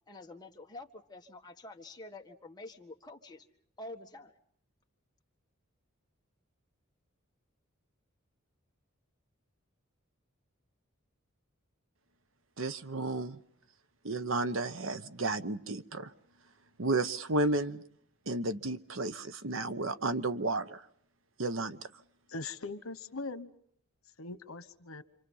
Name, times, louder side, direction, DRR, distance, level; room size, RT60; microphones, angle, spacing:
voice 1, 0.1-3.5 3.8-4.3, left 2 dB, 20° left, 2 dB, 1.7 m, -48 dB
voice 2, 12.6-13.4 14.0-16.1 16.8-17.8 18.3-20.8 21.4-21.9, right 2 dB, 65° right, 12 dB, 1.0 m, -32 dB
voice 3, 22.3-23.5 24.2-25.0, left 3 dB, 85° left, 11 dB, 1.3 m, -41 dB
28.0 x 25.5 x 5.6 m, 0.65 s
head